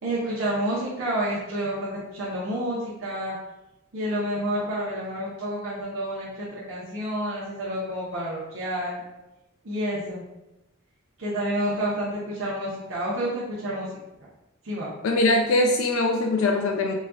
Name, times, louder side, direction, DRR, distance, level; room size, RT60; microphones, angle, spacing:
voice 1, 0.0-3.3 3.9-9.0 9.6-10.3 11.2-13.9 14.6-14.9, right 1 dB, 70° right, -7 dB, 0.8 m, -29 dB
voice 2, 15.0-16.9, left 2 dB, 80° left, 2 dB, 0.4 m, -22 dB
4.0 x 2.3 x 2.4 m, 0.95 s
head